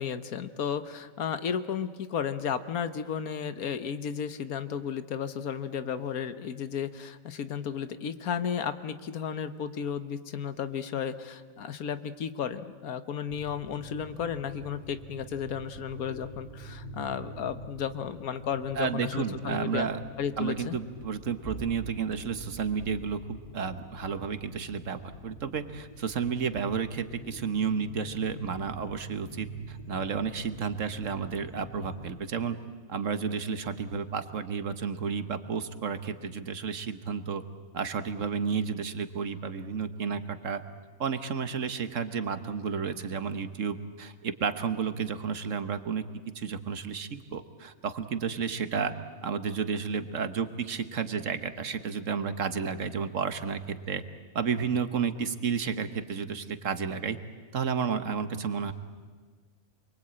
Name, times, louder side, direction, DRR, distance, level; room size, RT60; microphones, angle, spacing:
voice 1, 0.0-19.9 20.2-20.8, left 7 dB, 90° left, 12 dB, 1.5 m, -33 dB
sound 1, 13.3-32.1, equal, 35° left, 6.1 m, -45 dB
voice 2, 18.8-20.0 20.4-32.6 32.9-37.4 37.7-40.6 41.0-46.0 46.3-48.9 49.2-54.0 54.3-57.2 57.5-58.7, right 6 dB, 60° right, 11 dB, 1.5 m, -32 dB
28.5 x 22.5 x 8.8 m, 1.5 s
omnidirectional pair, 1.5 m